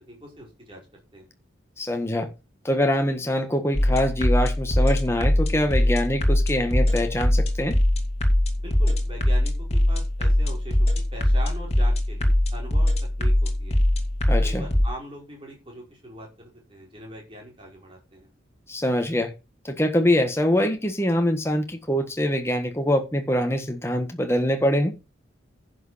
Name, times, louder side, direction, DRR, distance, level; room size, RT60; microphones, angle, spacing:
voice 1, 0.1-0.8 1.1-1.3 8.6-10.8 11.1-13.8 14.4-18.3, right 1 dB, 25° right, 0 dB, 5.1 m, -41 dB
voice 2, 1.8-2.3 2.6-7.7 14.3-14.6 18.7-19.3 19.6-24.9, left 1 dB, 15° left, 5 dB, 1.5 m, -24 dB
sound 1, 3.7-14.9, left 1 dB, 35° left, 2.5 m, -22 dB
10.5 x 6.4 x 5.7 m, 0.28 s
head